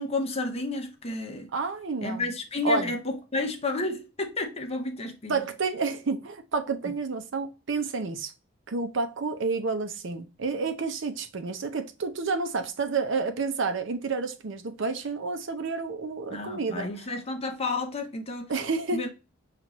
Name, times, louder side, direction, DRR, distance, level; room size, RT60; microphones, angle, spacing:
voice 1, 0.0-1.5 2.0-5.4 6.9-7.0 16.3-18.5 18.9-19.1, left 2 dB, 30° left, 0.7 m, -31 dB
voice 2, 1.5-2.3 2.6-2.9 5.3-8.3 8.7-16.9 18.5-19.1, right 4 dB, 65° right, 0.6 m, -30 dB
5.9 x 2.5 x 3.0 m
head